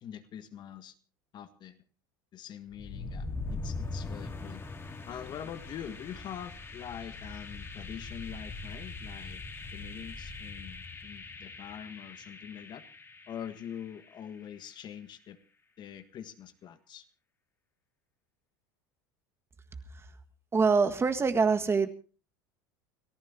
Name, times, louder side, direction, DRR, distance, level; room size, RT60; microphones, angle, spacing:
voice 1, 0.0-0.9 1.3-1.8 2.3-4.6 5.1-9.4 9.7-12.8 13.3-15.4 15.8-17.0, left 9 dB, 45° left, 9 dB, 1.7 m, -44 dB
sound 1, 2.7-14.6, left 3 dB, 25° left, 2.8 m, -42 dB
voice 2, 20.5-21.9, right 5 dB, 25° right, 8 dB, 1.7 m, -25 dB
29.5 x 14.0 x 2.8 m, 0.37 s
hypercardioid pair, 90°, 11 cm